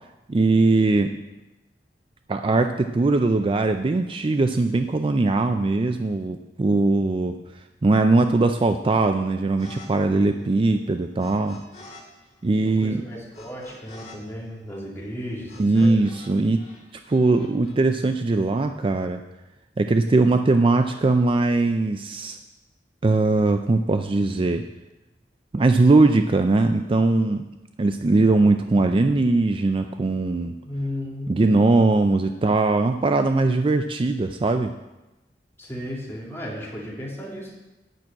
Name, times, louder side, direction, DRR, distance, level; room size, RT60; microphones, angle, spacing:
voice 1, 0.3-1.1 2.3-7.4 7.8-11.6 12.4-13.0 15.6-16.6 17.1-19.2 19.8-22.4 23.0-24.6 25.5-27.5 27.8-30.6 31.3-34.7, right 3 dB, 30° right, 7 dB, 0.4 m, -20 dB
sound 1, 9.6-9.9 10.1-12.0 12.3-16.3 16.6-17.8, left 2 dB, 40° left, 2.7 m, -47 dB
voice 2, 12.6-16.1 30.6-31.5 35.6-37.6, left 1 dB, 15° left, -5 dB, 3.0 m, -34 dB
9.2 x 6.1 x 8.5 m, 1.0 s
head